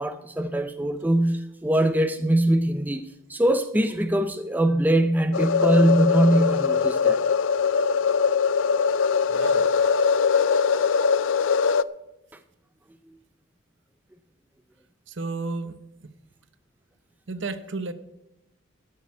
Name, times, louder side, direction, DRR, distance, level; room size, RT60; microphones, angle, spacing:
voice 1, 0.0-7.3, right 1 dB, 10° right, 0.4 m, -22 dB
sound 1, 5.3-11.8, left 6 dB, 60° left, 0.4 m, -21 dB
voice 2, 9.3-9.7 15.1-16.1 17.3-17.9, right 3 dB, 55° right, 0.9 m, -33 dB
13.0 x 6.6 x 9.3 m
head